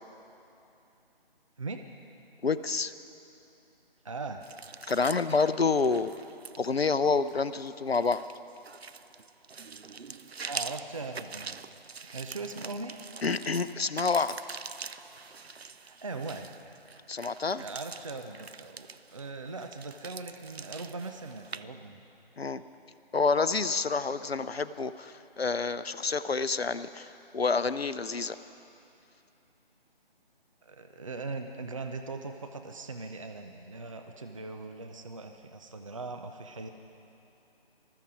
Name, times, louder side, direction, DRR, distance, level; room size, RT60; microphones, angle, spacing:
voice 1, 2.4-2.9 4.9-6.1 6.6-8.2 13.2-14.3 17.1-17.6 22.4-22.6 23.1-27.1 27.3-28.4, left 4 dB, 80° left, 13 dB, 0.7 m, -28 dB
voice 2, 4.0-4.4 10.5-11.6 12.1-13.0 15.8-16.5 17.5-22.0 30.6-36.7, right 3 dB, 35° right, 6 dB, 0.6 m, -40 dB
sound 1, 4.4-21.6, right 5 dB, 90° right, 0.5 m, -44 dB
19.5 x 14.0 x 5.0 m, 2.8 s
figure-of-eight pair, 155°, 30 cm